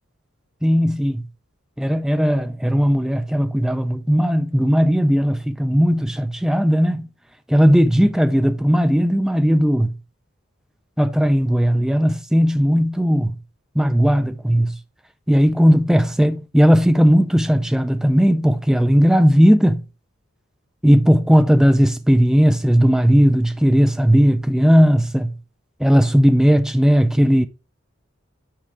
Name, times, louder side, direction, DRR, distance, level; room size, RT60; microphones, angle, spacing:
voice 1, 0.6-1.2 1.8-7.1 7.5-9.9 11.0-13.3 13.8-14.8 15.3-19.8 20.8-25.3 25.8-27.5, equal, 5° right, 0.4 m, -16 dB
7.4 x 4.7 x 3.3 m
head